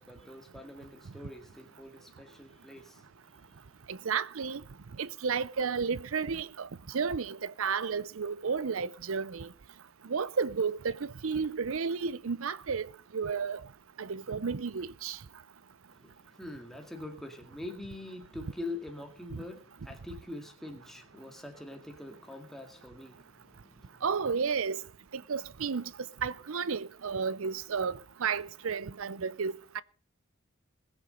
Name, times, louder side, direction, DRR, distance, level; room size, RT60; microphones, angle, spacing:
voice 1, 0.0-3.8 15.9-24.1, left 2 dB, ahead, 1.9 m, -44 dB
voice 2, 3.9-4.6 5.0-6.7 6.9-9.5 10.0-13.6 14.0-15.2 19.3-19.4 24.0-24.8 25.1-25.9 26.2-29.8, right 5 dB, 70° right, 0.6 m, -32 dB
21.0 x 7.1 x 5.3 m
head